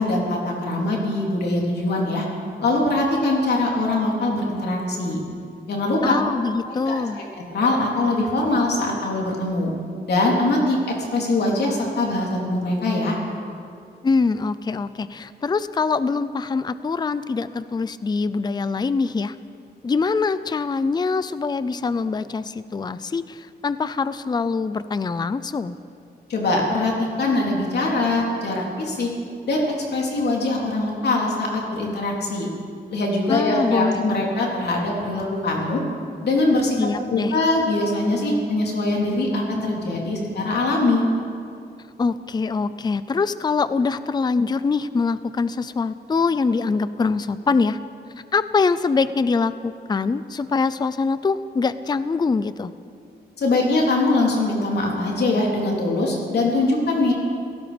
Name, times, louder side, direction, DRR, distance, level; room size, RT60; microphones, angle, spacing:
voice 1, 0.0-2.3 2.6-5.2 5.7-6.1 6.7-7.0 7.5-9.7 10.1-10.8 11.1-13.2 26.3-26.9 27.2-29.1 29.5-29.6 29.9-32.5 32.9-35.8 36.2-36.8 37.1-41.0 53.4-57.1, left 2 dB, 70° left, -2 dB, 3.6 m, -22 dB
voice 2, 6.0-7.2 14.0-19.4 19.8-25.8 33.3-34.2 36.8-37.3 42.0-47.8 48.3-52.7, left 4 dB, 25° left, 14 dB, 0.5 m, -23 dB
29.5 x 17.5 x 5.2 m, 2.4 s
wide cardioid pair, 145°, 18 cm